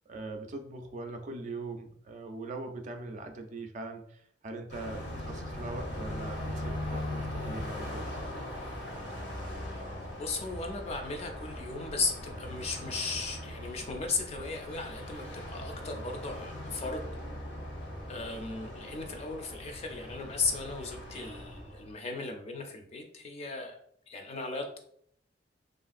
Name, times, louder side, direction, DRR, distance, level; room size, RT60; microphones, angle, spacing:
voice 1, 0.0-8.2, right 2 dB, 45° right, 5 dB, 0.4 m, -41 dB
Car passing by, 4.7-21.9, left 1 dB, 70° left, 0.8 m, -40 dB
voice 2, 10.2-17.1 18.1-23.8 24.1-24.8, left 3 dB, 35° left, 4 dB, 0.4 m, -36 dB
3.1 x 2.5 x 2.4 m, 0.65 s
head